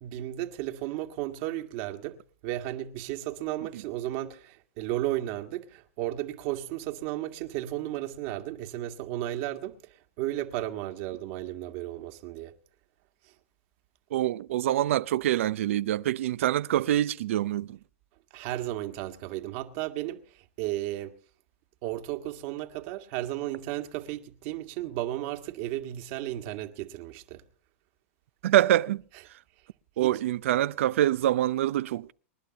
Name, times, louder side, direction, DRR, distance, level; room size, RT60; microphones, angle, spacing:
voice 1, 0.0-9.8 10.2-12.5 18.3-21.2 21.8-27.4 30.0-30.2, right 14 dB, 55° right, 1.8 m, -34 dB
voice 2, 14.1-17.8 28.4-29.0 30.0-32.1, right 13 dB, 75° right, 0.6 m, -25 dB
28.0 x 11.5 x 2.9 m
hypercardioid pair, 110°, 7 cm